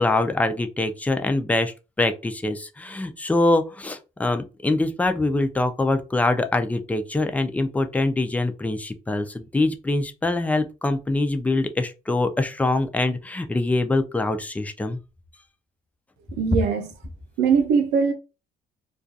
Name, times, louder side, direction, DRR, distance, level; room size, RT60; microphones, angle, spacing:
voice 1, 0.0-15.0, left 2 dB, 10° left, 0.3 m, -24 dB
voice 2, 16.3-16.9 17.4-18.1, right 6 dB, 85° right, 0.6 m, -21 dB
2.3 x 2.3 x 2.6 m
cardioid pair, 110°, 17 cm